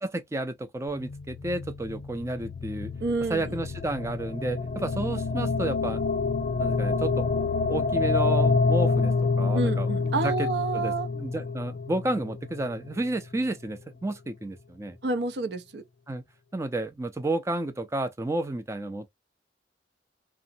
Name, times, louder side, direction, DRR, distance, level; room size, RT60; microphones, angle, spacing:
voice 1, 0.0-2.9 3.3-6.0 6.6-7.4 7.7-15.0 16.1-16.2 16.5-19.1, right 2 dB, 15° right, 0.4 m, -31 dB
sound 1, 0.9-13.1, left 4 dB, 50° left, 0.5 m, -27 dB
voice 2, 3.0-3.5 9.5-11.1 15.0-15.8, right 3 dB, 70° right, 0.5 m, -28 dB
2.9 x 2.0 x 2.6 m
head